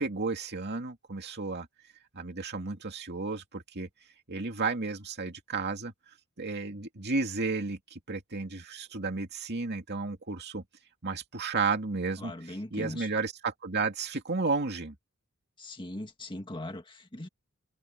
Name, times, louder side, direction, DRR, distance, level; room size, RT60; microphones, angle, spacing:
voice 1, 0.0-1.7 2.1-3.9 4.3-5.9 6.4-10.6 11.0-12.3 12.7-15.0, right 4 dB, 50° right, 2.4 m, -32 dB
voice 2, 12.2-13.1 15.6-17.3, left 1 dB, 25° left, 2.0 m, -40 dB
head